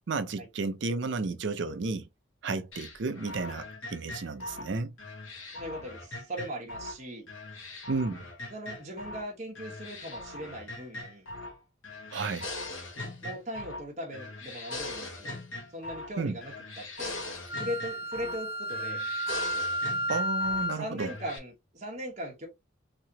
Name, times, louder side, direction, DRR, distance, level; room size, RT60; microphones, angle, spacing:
voice 1, 0.1-2.1 2.4-4.9 7.9-8.3 12.1-12.5 16.2-16.4 20.1-21.1, right 3 dB, 60° right, 0.5 m, -32 dB
sound 1, 2.7-7.0 7.3-9.3 9.6-11.6 11.8-13.9 14.1-16.2 16.4-18.4 18.7-20.7 21.0-21.4, left 2 dB, 85° left, 1.0 m, -41 dB
voice 2, 5.5-7.3 8.5-11.3 13.2-15.3 15.7-17.2 17.5-19.0 20.7-22.5, equal, 35° right, 1.0 m, -39 dB
Wind instrument woodwind instrument, 17.5-20.9, equal, 10° right, 0.8 m, -32 dB
3.1 x 2.8 x 2.7 m
head